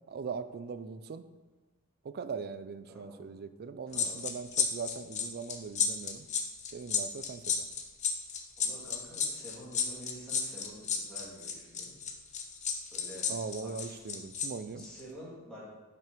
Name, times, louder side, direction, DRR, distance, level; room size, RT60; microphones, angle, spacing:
voice 1, 0.1-1.3 2.0-6.3 6.7-7.6 13.3-14.9, right 5 dB, 45° right, 12 dB, 0.4 m, -40 dB
voice 2, 2.9-3.2 3.9-4.2 8.6-11.9 12.9-13.3 13.6-14.0 14.8-15.7, equal, 5° left, -9 dB, 2.7 m, -48 dB
sound 1, 3.9-14.5 14.8-15.0, left 6 dB, 30° left, 0.8 m, -32 dB
6.1 x 5.5 x 5.2 m, 1.2 s
head